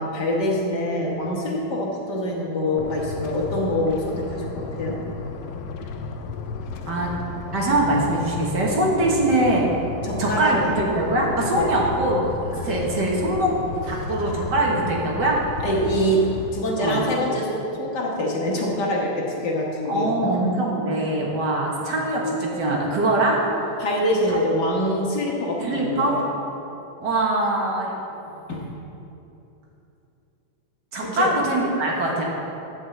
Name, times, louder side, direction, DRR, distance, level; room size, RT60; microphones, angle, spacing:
voice 1, 0.0-5.0 10.0-10.7 11.6-11.7 15.6-20.4 23.8-26.2 28.5-28.7 31.0-31.4, equal, 55° left, -3 dB, 1.9 m, -25 dB
sound 1, 2.8-16.5, left 4 dB, 70° left, 0.9 m, -33 dB
voice 2, 7.5-9.7 10.2-13.5 13.9-15.4 16.8-17.0 19.9-23.5 24.3-24.4 25.6-26.1 27.0-27.9 30.9-32.2, right 1 dB, 55° right, -3 dB, 2.0 m, -22 dB
11.0 x 5.0 x 7.9 m, 2.9 s
omnidirectional pair, 2.3 m